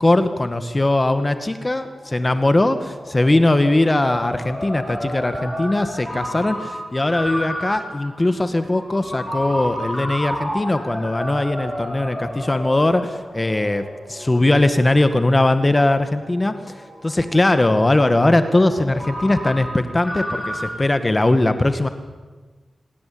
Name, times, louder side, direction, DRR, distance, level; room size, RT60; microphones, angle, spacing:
voice 1, 0.0-16.6 17.0-21.9, left 2 dB, 30° left, 9 dB, 2.0 m, -20 dB
Ringtone, 1.4-20.8, equal, 5° right, 8.0 m, -32 dB
27.0 x 19.5 x 8.8 m, 1.3 s
cardioid pair, 55°, 0 cm